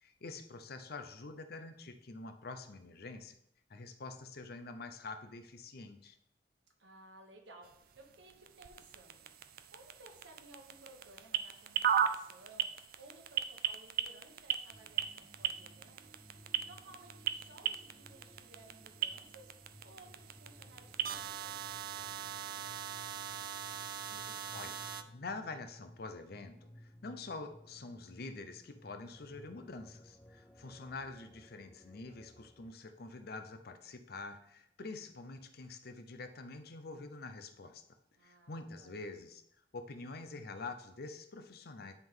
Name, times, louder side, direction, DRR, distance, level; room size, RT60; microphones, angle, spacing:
voice 1, 0.0-3.4 3.7-6.2 24.1-37.8 38.2-39.4 39.7-41.9, left 3 dB, 60° left, 8 dB, 0.6 m, -46 dB
voice 2, 6.8-7.7 8.0-9.3 9.7-19.5 19.8-22.9 38.1-39.0, right 2 dB, 80° right, 2 dB, 1.4 m, -58 dB
sound 1, 7.6-25.0, right 9 dB, 55° right, 0.4 m, -39 dB
sound 2, 14.7-32.7, equal, 10° left, 0.4 m, -59 dB
10.5 x 3.6 x 3.8 m, 0.76 s
head